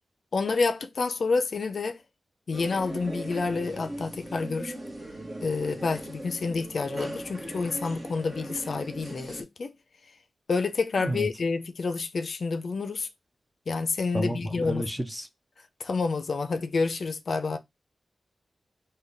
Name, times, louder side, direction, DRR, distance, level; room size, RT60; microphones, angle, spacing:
voice 1, 0.3-2.0 2.5-4.8 5.4-9.7 10.5-13.1 13.7-14.8 15.8-17.6, left 4 dB, 55° left, 0.4 m, -28 dB
sound 1, 2.5-9.4, right 1 dB, 35° right, 1.1 m, -39 dB
voice 2, 14.1-15.3, right 1 dB, 10° right, 0.5 m, -31 dB
3.9 x 2.2 x 3.2 m
wide cardioid pair, 145°, 0 cm